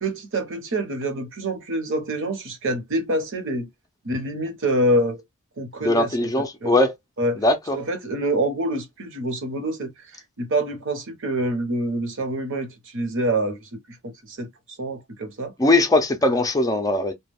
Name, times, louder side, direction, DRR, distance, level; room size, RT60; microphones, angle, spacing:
voice 1, 0.0-3.7 4.0-5.2 5.6-6.3 6.6-6.7 7.2-7.4 7.7-9.9 10.4-15.5 16.3-16.4, right 1 dB, 60° right, 0.9 m, -26 dB
voice 2, 5.8-6.9 7.4-7.8 15.6-17.1, left 2 dB, 15° left, 0.4 m, -20 dB
2.2 x 2.2 x 3.4 m
head